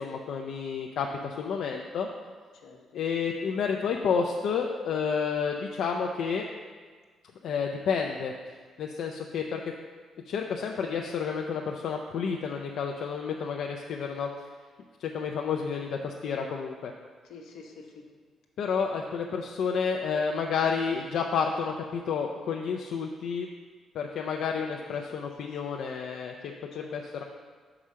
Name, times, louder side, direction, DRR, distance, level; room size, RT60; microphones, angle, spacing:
voice 1, 0.0-2.1 2.9-6.4 7.4-8.3 8.8-9.6 10.3-14.3 15.0-16.9 18.6-23.5 23.9-27.2, left 6 dB, 75° left, 1 dB, 0.5 m, -30 dB
voice 2, 2.5-3.0 17.2-18.0 24.4-25.1 25.4-25.6 26.7-27.2, left 4 dB, 90° left, 0 dB, 1.0 m, -49 dB
6.2 x 4.9 x 5.6 m, 1.5 s
cardioid pair, 90°, 0 cm